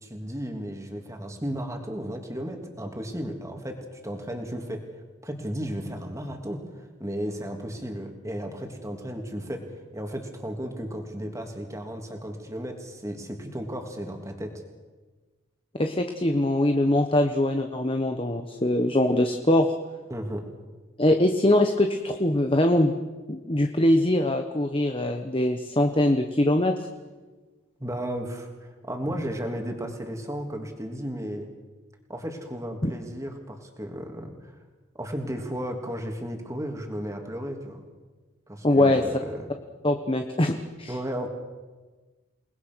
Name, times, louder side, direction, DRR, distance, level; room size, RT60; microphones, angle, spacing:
voice 1, 0.0-4.8 5.2-9.6 9.9-14.5 20.1-20.4 27.8-31.5 32.1-34.5 35.0-37.8 38.5-39.5 40.9-41.3, equal, 15° right, 3 dB, 3.1 m, -34 dB
voice 2, 15.8-19.7 21.0-22.9 23.3-26.7 32.8-32.9 38.6-39.0 39.8-40.9, left 1 dB, 25° left, 5 dB, 1.1 m, -22 dB
29.0 x 20.0 x 6.3 m, 1.3 s
head